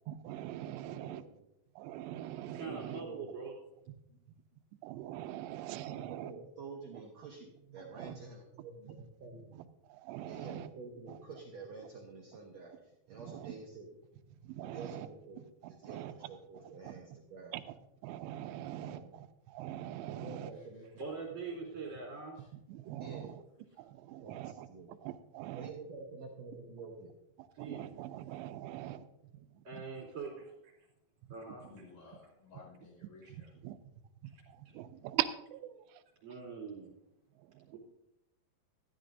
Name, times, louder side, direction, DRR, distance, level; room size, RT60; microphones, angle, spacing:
voice 1, 0.1-1.2 1.8-3.0 4.8-6.3 8.0-8.1 9.9-10.7 13.3-13.5 14.5-15.1 15.6-16.1 16.8-16.9 17.5-17.6 18.0-20.5 22.7-23.3 23.8-24.7 25.0-25.7 27.6-29.0 29.7-29.8 33.6-33.8 34.5-35.8, right 13 dB, 85° right, 11 dB, 2.8 m, -41 dB
voice 2, 0.8-1.4 2.6-3.3 4.1-4.2 5.3-9.7 10.2-13.9 14.6-15.4 15.7-17.6 18.5-19.2 20.1-20.9 21.1-21.2 21.5-21.6 22.9-23.4 24.2-24.9 25.5-27.1, right 4 dB, 70° right, -1 dB, 1.6 m, -49 dB
voice 3, 2.5-3.5 21.0-22.4 27.5-27.9 29.6-30.7 31.3-31.7 33.2-33.3 34.7-34.8 36.2-36.9 37.7-37.8, right 4 dB, 45° right, -6 dB, 4.1 m, -43 dB
voice 4, 31.7-33.5, left 3 dB, 75° left, -3 dB, 7.3 m, -56 dB
13.5 x 12.5 x 2.6 m, 0.84 s
omnidirectional pair, 4.9 m